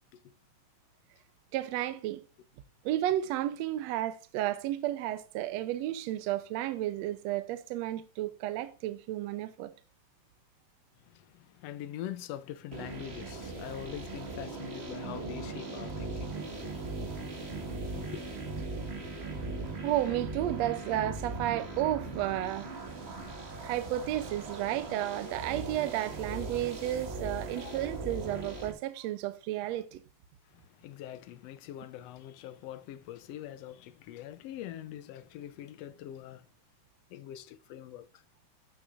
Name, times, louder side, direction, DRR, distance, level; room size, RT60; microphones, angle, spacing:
voice 1, 1.5-2.2 2.9-9.7 19.8-22.8 23.6-30.0, right 13 dB, 80° right, 1.7 m, -32 dB
voice 2, 11.0-18.3 27.5-27.8 30.5-36.5 37.1-38.2, left 12 dB, 75° left, 1.5 m, -44 dB
sound 1, 12.7-28.7, right 3 dB, 30° right, 1.2 m, -39 dB
14.0 x 6.3 x 2.5 m
omnidirectional pair, 3.3 m